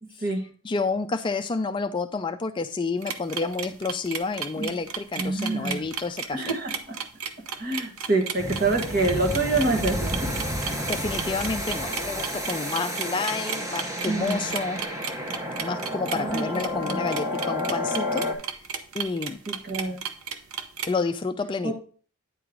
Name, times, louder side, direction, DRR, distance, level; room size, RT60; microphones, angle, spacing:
voice 1, 0.0-0.5 4.6-4.7 5.1-5.9 6.3-7.0 7.6-10.2 14.0-14.5 16.1-17.1 19.5-20.0 21.6-21.7, right 2 dB, 45° right, 2 dB, 1.4 m, -27 dB
voice 2, 0.6-6.5 10.9-14.8 15.6-18.3 18.9-19.4 20.9-21.7, left 4 dB, 20° left, 7 dB, 0.3 m, -29 dB
sound 1, 3.0-20.9, right 7 dB, 85° right, 0.8 m, -33 dB
sound 2, 8.4-18.3, equal, 15° right, 0.8 m, -31 dB
9.2 x 4.7 x 3.7 m, 0.41 s
head